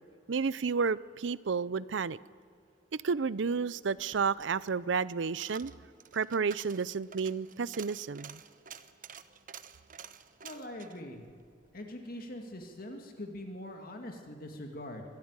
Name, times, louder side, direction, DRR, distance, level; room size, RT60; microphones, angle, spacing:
voice 1, 0.3-2.2 2.9-5.7 6.1-8.4, right 5 dB, 75° right, 19 dB, 0.6 m, -31 dB
Coin (dropping), 4.0-12.3 12.7-12.8, right 8 dB, 45° right, 0.9 m, -51 dB
voice 2, 10.4-11.2 11.7-15.0, left 1 dB, 50° left, 3 dB, 2.1 m, -43 dB
24.5 x 13.0 x 9.7 m, 2.3 s
head